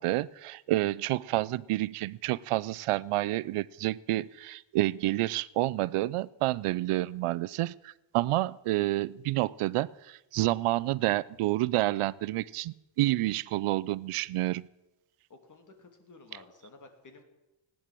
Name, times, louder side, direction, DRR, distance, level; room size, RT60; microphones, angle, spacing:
voice 1, 0.0-14.6, right 17 dB, 85° right, 20 dB, 0.6 m, -29 dB
voice 2, 15.3-17.2, left 3 dB, 35° left, 5 dB, 2.7 m, -53 dB
18.0 x 10.0 x 7.6 m, 0.98 s
wide cardioid pair, 145°, 50 cm